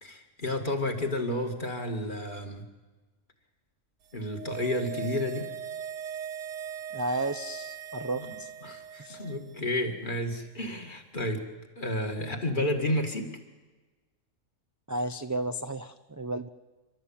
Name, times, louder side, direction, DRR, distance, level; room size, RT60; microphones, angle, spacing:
voice 1, 0.0-2.6 4.1-5.5 8.2-8.4 8.6-11.4 11.8-13.3, left 1 dB, 40° left, 3 dB, 2.3 m, -31 dB
sound 1, 4.1-9.6 9.9-10.0, right 8 dB, 60° right, 1.3 m, -40 dB
voice 2, 6.9-8.5 9.0-9.3 14.9-16.5, right 2 dB, 20° right, 8 dB, 0.4 m, -33 dB
28.0 x 13.0 x 8.7 m, 1.3 s
omnidirectional pair, 1.4 m